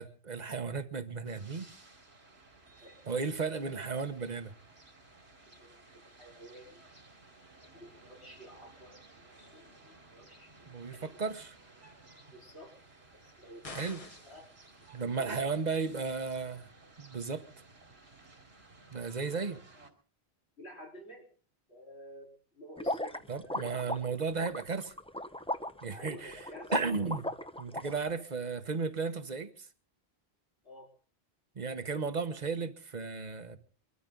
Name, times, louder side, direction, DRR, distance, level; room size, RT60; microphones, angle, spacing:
voice 1, 0.0-1.7 3.1-4.5 10.7-11.5 13.7-14.0 14.9-16.7 17.0-17.5 18.9-19.6 23.3-24.9 25.8-26.4 26.7-27.3 27.6-29.7 31.5-33.6, right 4 dB, 45° right, 1.2 m, -34 dB
sound 1, 1.2-19.9, right 2 dB, 80° right, 3.0 m, -57 dB
voice 2, 2.7-3.0 5.4-6.8 7.6-10.5 10.9-11.1 12.3-12.7 13.1-14.5 15.0-15.4 15.7-15.8 20.6-21.3 21.7-23.7 25.8-27.1 27.7-28.0 30.6-30.9, equal, 85° left, 4.5 m, -52 dB
sound 2, 13.6-14.4, left 2 dB, 35° left, 1.3 m, -45 dB
sound 3, 22.8-27.8, left 1 dB, 5° left, 0.7 m, -36 dB
23.5 x 13.5 x 3.8 m
omnidirectional pair, 1.1 m